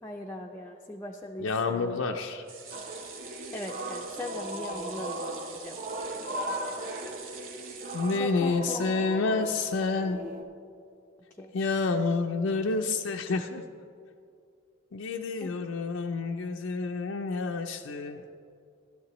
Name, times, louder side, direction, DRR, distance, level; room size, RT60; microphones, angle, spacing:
voice 1, 0.0-2.0 3.5-5.8 8.1-9.1 9.8-9.9 11.4-11.5 15.4-15.5, left 2 dB, 15° left, 0 dB, 0.5 m, -39 dB
voice 2, 1.4-2.4 7.9-10.2 11.5-13.6 14.9-18.2, left 3 dB, 80° left, 3 dB, 0.4 m, -29 dB
sound 1, 2.5-8.8 9.2-9.3 9.6-9.7, right 6 dB, 80° right, 1.1 m, -46 dB
sound 2, 2.7-10.4, right 1 dB, 45° right, 0.8 m, -38 dB
12.5 x 12.5 x 3.0 m, 2.5 s
head